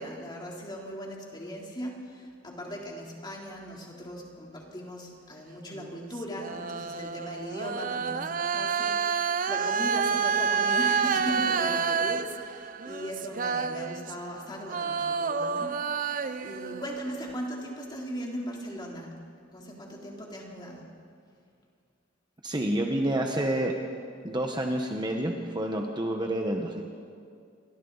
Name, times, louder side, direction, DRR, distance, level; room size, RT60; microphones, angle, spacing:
voice 1, 0.0-19.2 19.5-20.9, equal, 25° left, -2 dB, 3.7 m, -38 dB
sound 1, 5.7-14.4 14.7-17.3, right 6 dB, 45° right, 0.6 m, -29 dB
voice 2, 22.4-23.7 24.2-26.8, right 1 dB, 25° right, 2 dB, 1.4 m, -28 dB
29.0 x 25.0 x 4.2 m, 2.3 s
head